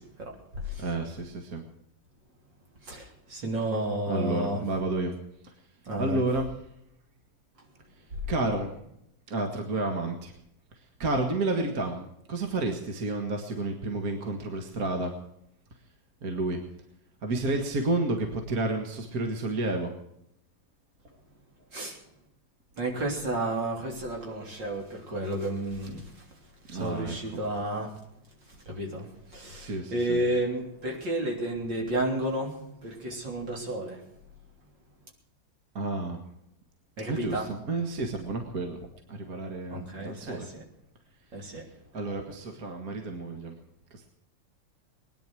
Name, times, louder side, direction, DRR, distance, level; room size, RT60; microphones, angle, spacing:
voice 1, 0.0-0.9 2.8-4.6 5.9-6.2 21.7-22.0 22.8-26.1 26.7-27.9 28.7-34.0 37.0-37.5 39.7-40.6 41.3-41.7, right 1 dB, 70° right, 0 dB, 4.1 m, -32 dB
voice 2, 0.8-1.6 4.1-5.1 6.0-6.5 8.3-8.7 9.3-10.3 11.0-12.0 12.3-15.1 16.2-16.6 17.2-19.9 26.7-27.2 29.6-30.2 35.8-36.2 37.1-38.8 39.1-40.5 41.9-43.5, right 2 dB, 50° right, 4 dB, 2.2 m, -30 dB
20.5 x 10.5 x 6.3 m, 0.80 s
omnidirectional pair, 2.1 m